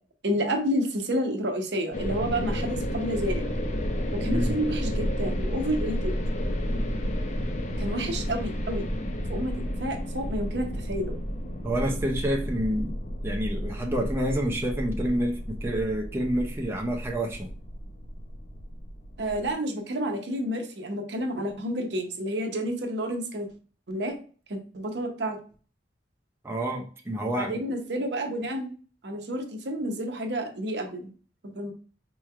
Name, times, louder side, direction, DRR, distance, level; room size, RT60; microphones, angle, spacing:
voice 1, 0.2-3.4 4.1-6.1 7.8-8.9 9.3-9.5 9.8-11.1 19.2-23.5 23.9-24.1 24.5-25.4 27.4-28.7 29.0-31.1 31.4-31.7, equal, 70° right, 5 dB, 0.7 m, -30 dB
sound 1, 1.9-19.5, equal, 40° left, 0.5 m, -31 dB
voice 2, 11.6-13.0 13.2-17.5 26.4-27.6, right 1 dB, 15° right, 1 dB, 0.5 m, -28 dB
4.4 x 3.1 x 2.3 m, 0.39 s
head